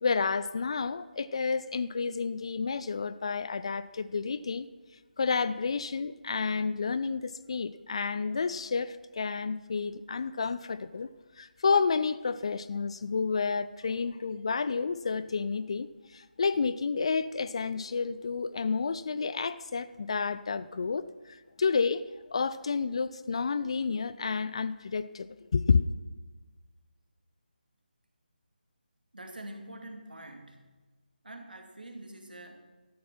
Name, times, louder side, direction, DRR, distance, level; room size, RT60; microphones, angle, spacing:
voice 1, 0.0-4.7 5.2-11.1 11.4-25.8, left 5 dB, 35° left, 0.4 m, -30 dB
voice 2, 29.1-30.7 31.2-32.6, right 1 dB, 65° right, 2.3 m, -45 dB
13.5 x 9.3 x 5.8 m
figure-of-eight pair, 155°, 5 cm